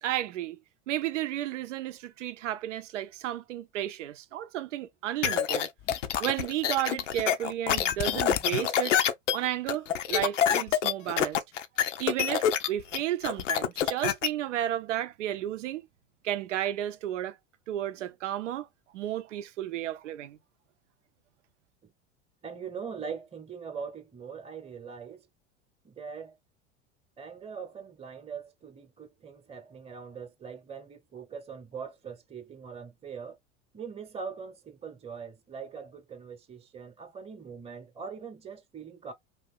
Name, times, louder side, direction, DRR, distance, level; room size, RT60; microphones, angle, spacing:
voice 1, 0.0-0.6 0.9-5.7 6.2-9.0 9.3-11.4 12.0-15.9 16.2-17.4 17.7-18.7 18.9-20.4, right 12 dB, 85° right, 0.6 m, -32 dB
sound 1, 5.2-14.3, left 9 dB, 85° left, 0.6 m, -26 dB
sound 2, 5.8-6.3 7.7-8.5 11.5-11.6, left 12 dB, 30° left, 0.3 m, -37 dB
voice 2, 22.4-25.3 25.8-26.4 27.2-33.4 33.7-39.1, right 6 dB, 15° right, 0.8 m, -42 dB
2.9 x 2.5 x 3.5 m
hypercardioid pair, 85°, 36 cm